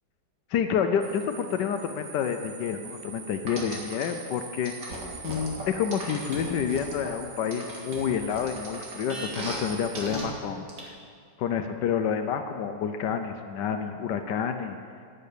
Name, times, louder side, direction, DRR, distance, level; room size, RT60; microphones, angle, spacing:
voice 1, 0.5-4.7 5.2-10.9 11.4-14.8, left 7 dB, 80° left, 7 dB, 1.3 m, -29 dB
sound 1, 1.0-10.0, right 5 dB, 50° right, 1.1 m, -44 dB
sound 2, 3.5-4.1 4.6-7.1 7.5-9.6 9.9-10.2 10.7-10.8, right 2 dB, 75° right, 2.5 m, -36 dB
10.0 x 8.7 x 6.7 m, 2.2 s
omnidirectional pair, 1.9 m